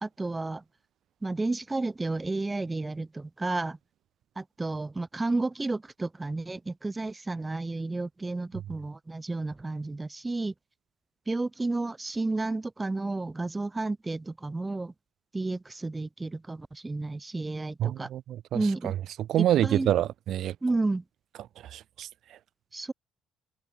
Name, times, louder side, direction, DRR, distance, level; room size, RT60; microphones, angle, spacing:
voice 1, 0.0-0.6 1.2-3.8 4.4-10.5 11.3-14.9 15.3-18.1 18.5-18.9 19.4-19.9 20.6-21.0 22.7-22.9, right 2 dB, 15° right, 0.7 m, -31 dB
voice 2, 17.8-20.5 21.6-22.1, right 12 dB, 65° right, 0.4 m, -27 dB
cardioid pair, 105°, 0 cm